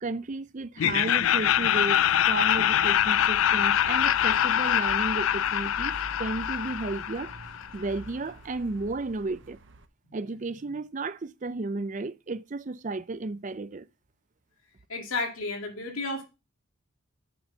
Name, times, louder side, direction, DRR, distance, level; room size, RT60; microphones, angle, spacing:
voice 1, 0.0-2.0 2.3-7.3 7.7-9.6 10.1-13.9, right 3 dB, 35° right, 0.5 m, -33 dB
Laughter, 0.8-7.7, left 10 dB, 75° left, 0.4 m, -24 dB
sound 1, 1.2-9.8, right 2 dB, 60° right, 0.8 m, -46 dB
voice 2, 14.9-16.2, left 3 dB, 90° left, 2.4 m, -32 dB
6.8 x 6.1 x 5.6 m
head